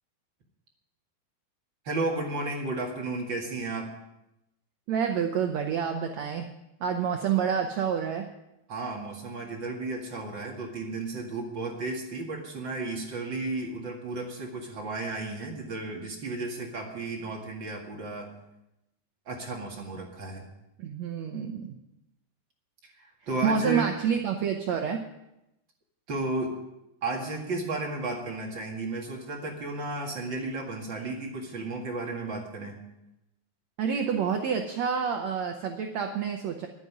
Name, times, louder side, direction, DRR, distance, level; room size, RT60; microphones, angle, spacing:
voice 1, 1.8-4.0 8.7-18.3 19.3-20.5 22.8-23.9 26.1-26.6 27.0-32.8, right 2 dB, 40° right, 0 dB, 2.0 m, -33 dB
voice 2, 4.9-6.5 6.8-8.3 20.8-21.8 23.4-25.0 33.8-36.7, right 7 dB, 90° right, 4 dB, 1.5 m, -28 dB
11.0 x 9.3 x 9.6 m, 0.90 s
omnidirectional pair, 4.4 m